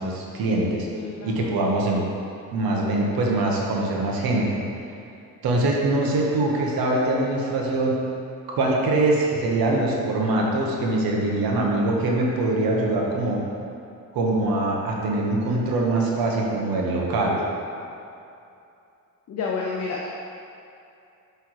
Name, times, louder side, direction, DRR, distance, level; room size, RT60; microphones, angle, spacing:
voice 1, 0.0-0.9 1.2-2.0 2.5-4.6 5.4-7.9 8.5-13.4 14.1-17.4, right 2 dB, 80° right, -2 dB, 1.2 m, -23 dB
voice 2, 0.9-1.7 19.3-20.1, left 4 dB, 45° left, -2 dB, 0.6 m, -30 dB
7.9 x 3.5 x 4.7 m, 2.6 s
cardioid pair, 160°, 35 cm